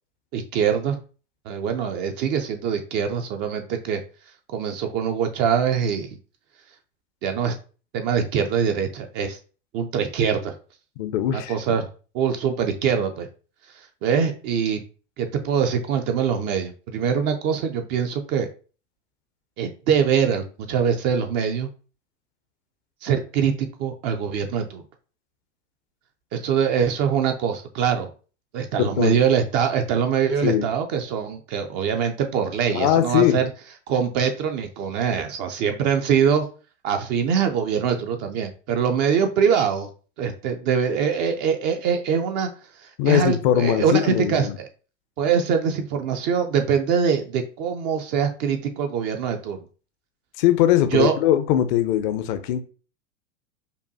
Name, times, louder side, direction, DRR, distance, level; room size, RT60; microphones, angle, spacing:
voice 1, 0.3-1.0 1.5-4.0 4.5-6.2 7.2-7.5 7.9-9.4 9.7-10.5 11.3-11.9 12.1-13.3 13.7-14.8 15.2-18.5 19.6-21.7 23.0-24.8 26.3-28.1 28.5-33.5 33.9-36.5 36.8-39.9 40.2-42.5 42.8-44.5 45.2-49.6 50.9-51.2, right 7 dB, 30° right, 5 dB, 0.4 m, -23 dB
voice 2, 11.0-11.8 28.8-29.2 30.4-30.7 32.7-33.4 43.0-44.6 50.4-52.6, left 11 dB, 40° left, 10 dB, 0.5 m, -21 dB
5.3 x 2.2 x 2.6 m, 0.37 s
figure-of-eight pair, 90°, 37 cm